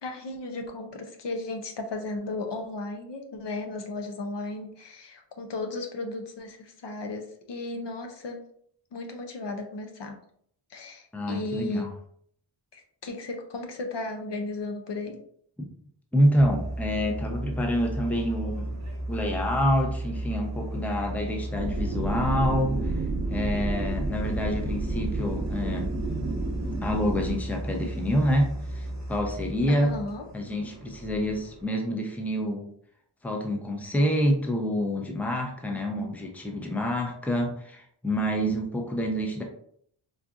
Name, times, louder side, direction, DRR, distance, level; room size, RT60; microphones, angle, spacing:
voice 1, 0.0-8.4 8.9-10.2 10.7-12.0 12.7-15.2 29.7-30.3, left 2 dB, 60° left, 3 dB, 0.6 m, -35 dB
voice 2, 11.1-11.9 15.6-15.7 16.1-18.8 19.1-23.0 23.3-25.9 26.8-29.9 30.3-32.7 33.2-39.4, equal, 5° left, 1 dB, 0.6 m, -27 dB
sound 1, 16.4-31.7, right 1 dB, 35° right, 0.9 m, -35 dB
sound 2, 21.5-27.4, right 3 dB, 75° right, 0.7 m, -31 dB
3.9 x 2.4 x 2.4 m, 0.64 s
wide cardioid pair, 60°, 48 cm